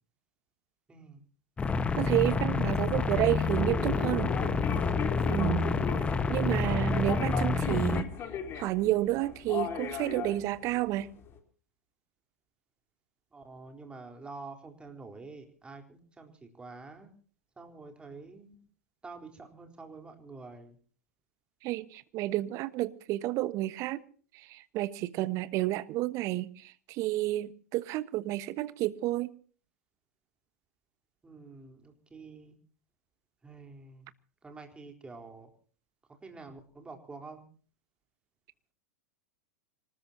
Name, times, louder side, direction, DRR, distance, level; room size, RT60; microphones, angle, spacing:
voice 1, 0.9-1.2 13.3-17.2 17.6-18.6 19.0-20.8 31.2-32.5 33.4-34.1 34.4-35.5 36.1-37.4, right 3 dB, 10° right, 4.0 m, -47 dB
sound 1, 1.6-8.0, left 3 dB, 15° left, 1.3 m, -28 dB
voice 2, 2.0-4.3 5.3-5.7 6.3-8.1 8.5-11.1 21.6-24.0 24.3-29.3, right 16 dB, 40° right, 1.3 m, -30 dB
sound 2, 3.5-11.4, left 7 dB, 30° left, 3.7 m, -37 dB
26.0 x 20.0 x 2.8 m
figure-of-eight pair, 100°, 8 cm